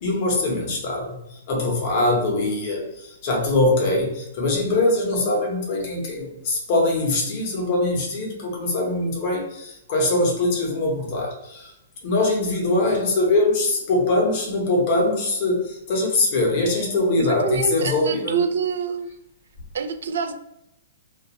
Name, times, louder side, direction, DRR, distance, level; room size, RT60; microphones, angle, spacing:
voice 1, 0.0-11.7 12.0-18.4, left 2 dB, 40° left, -1 dB, 0.8 m, -22 dB
voice 2, 17.2-19.1 19.7-20.3, right 6 dB, 80° right, 8 dB, 0.3 m, -26 dB
2.3 x 2.3 x 2.8 m, 0.82 s
hypercardioid pair, 165°, 0 cm